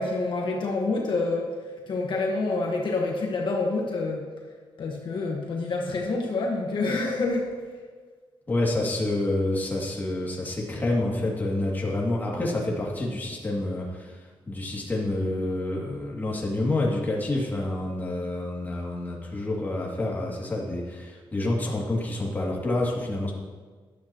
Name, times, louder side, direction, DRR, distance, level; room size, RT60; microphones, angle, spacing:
voice 1, 0.0-1.5 1.9-4.3 4.8-7.6, left 3 dB, 60° left, 0 dB, 1.4 m, -27 dB
voice 2, 8.5-23.3, left 2 dB, 20° left, -3 dB, 2.5 m, -28 dB
14.0 x 11.5 x 3.0 m, 1.4 s
wide cardioid pair, 145°, 9 cm